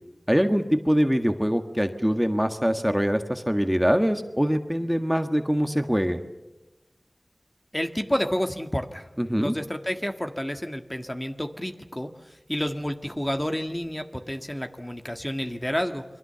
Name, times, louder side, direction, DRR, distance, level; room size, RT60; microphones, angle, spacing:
voice 1, 0.3-6.2 9.2-9.5, equal, 5° right, 7 dB, 1.7 m, -23 dB
voice 2, 7.7-9.1 9.4-16.0, equal, 20° left, 6 dB, 1.8 m, -30 dB
28.5 x 23.0 x 7.0 m, 1.0 s
wide cardioid pair, 40°, 0 cm